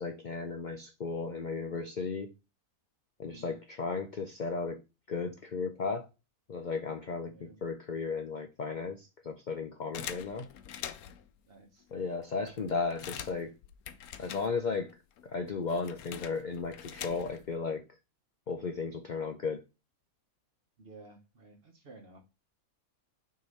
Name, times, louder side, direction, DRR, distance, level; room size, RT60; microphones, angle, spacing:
voice 1, 0.0-2.3 3.2-4.8 5.1-6.1 6.5-10.5 11.9-13.5 14.2-15.0 15.2-17.8 18.5-19.6, left 4 dB, 55° left, 0.5 m, -35 dB
voice 2, 3.2-3.6 7.3-7.6 10.5-10.6 11.5-11.9 20.8-22.2, right 2 dB, 45° right, 1.2 m, -54 dB
sound 1, 9.9-11.3 11.9-12.0 12.2-14.9 15.2-17.5, left 10 dB, 80° left, 1.1 m, -44 dB
6.3 x 3.0 x 5.3 m
omnidirectional pair, 1.6 m